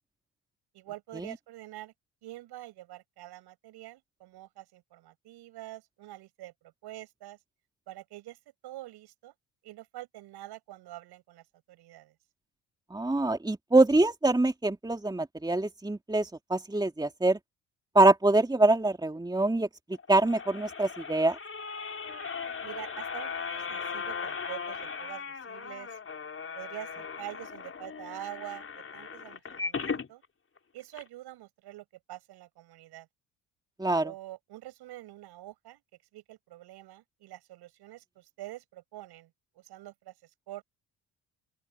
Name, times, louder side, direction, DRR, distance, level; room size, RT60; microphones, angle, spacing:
voice 1, 0.7-1.9 2.2-7.4 7.9-8.4 8.6-9.3 9.6-12.1 22.6-26.0 26.5-28.7 28.9-30.2 30.7-33.1 34.0-35.8 36.1-40.6, right 15 dB, 75° right, 7.7 m, -46 dB
voice 2, 12.9-17.4 17.9-19.7 20.1-21.4 33.8-34.1, right 2 dB, 10° right, 2.4 m, -24 dB
sound 1, 19.9-30.1 30.6-30.7 30.9-31.0, left 5 dB, 35° left, 4.3 m, -38 dB
open air
supercardioid pair, 65°, 40 cm